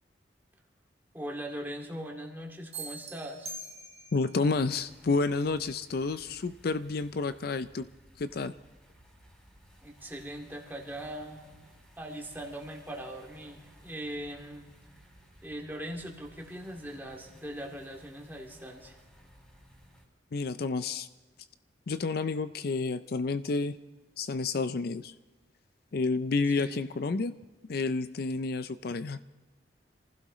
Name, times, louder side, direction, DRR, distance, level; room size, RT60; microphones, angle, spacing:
voice 1, 1.1-3.5 9.8-11.4 12.0-14.7 15.4-18.9 26.5-26.9, equal, 10° right, 0 dB, 2.2 m, -40 dB
sound 1, 2.7-4.4, right 3 dB, 35° right, 1.0 m, -42 dB
voice 2, 4.1-7.9 8.2-8.5 20.3-21.1 21.9-23.8 24.2-25.1 25.9-27.3 27.7-29.2, left 3 dB, 55° left, 12 dB, 0.4 m, -30 dB
sound 2, 4.5-20.1, equal, 5° left, 3.9 m, -58 dB
27.0 x 15.5 x 3.1 m, 1.3 s
head